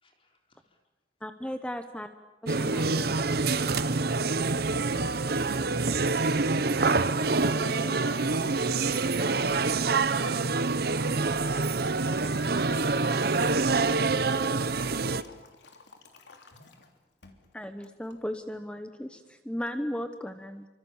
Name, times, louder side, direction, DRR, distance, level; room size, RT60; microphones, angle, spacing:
voice 1, 0.0-0.6 7.1-8.9, equal, 30° left, 2 dB, 4.1 m, -42 dB
voice 2, 1.2-2.1 2.4-3.1 17.5-20.7, equal, 5° left, 8 dB, 1.0 m, -36 dB
sound 1, 2.5-15.2, right 3 dB, 55° right, 0.9 m, -26 dB
voice 3, 3.3-6.1, right 2 dB, 75° right, 1 dB, 6.9 m, -50 dB
Liquid, 11.3-16.9 17.2-17.5 17.8-18.2, left 3 dB, 70° left, 3.2 m, -51 dB
28.0 x 25.0 x 7.2 m, 1.1 s
head